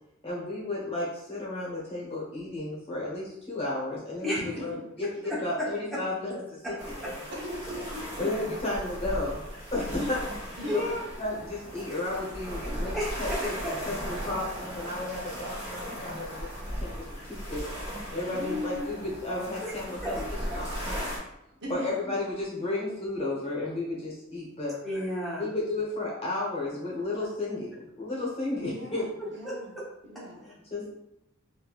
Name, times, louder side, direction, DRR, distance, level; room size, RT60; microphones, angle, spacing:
voice 1, 0.2-7.3 8.2-9.3 9.7-10.2 10.7-10.8 11.2-17.6 18.1-20.2 20.5-21.2 21.7-24.8 25.4-29.0 30.4-30.9, left 2 dB, 30° left, -5 dB, 1.0 m, -33 dB
voice 2, 4.4-4.8 7.3-8.3 9.9-10.2 10.6-10.8 18.3-18.9 21.6-22.2 28.6-29.8 30.0-30.5, left 1 dB, 55° right, -3 dB, 0.8 m, -38 dB
sound 1, 6.8-21.2, equal, 25° right, 1.1 m, -37 dB
voice 3, 10.7-11.0 12.6-13.8 19.6-19.7 20.0-20.2 20.5-20.6 24.8-25.5 29.2-29.6, equal, ahead, -8 dB, 0.9 m, -33 dB
3.3 x 2.6 x 2.4 m, 0.82 s
head